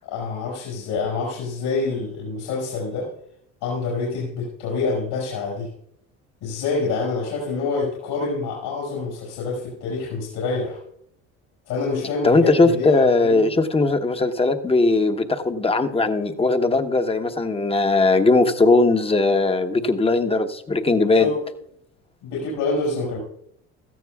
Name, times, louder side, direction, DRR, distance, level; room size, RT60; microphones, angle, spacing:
voice 1, 0.0-3.1 3.6-5.7 6.4-10.8 11.7-13.5 21.2-21.4 22.2-23.2, left 3 dB, 80° left, -3 dB, 5.6 m, -26 dB
voice 2, 12.2-21.3, left 3 dB, 15° left, 7 dB, 1.0 m, -19 dB
17.0 x 13.5 x 2.4 m, 0.70 s
supercardioid pair, 85°, 34 cm